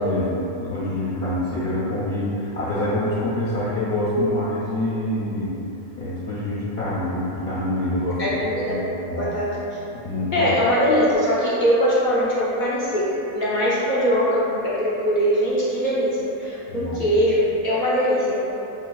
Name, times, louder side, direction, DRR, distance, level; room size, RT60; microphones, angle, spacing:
voice 1, 0.0-5.6 6.0-8.4 8.7-9.3 9.9-10.5 16.7-17.1, left 1 dB, 65° left, -10 dB, 1.0 m, -26 dB
voice 2, 8.2-8.8 9.1-9.5 10.3-18.4, equal, 50° left, -8 dB, 0.7 m, -21 dB
5.7 x 2.3 x 2.3 m, 2.9 s
omnidirectional pair, 1.2 m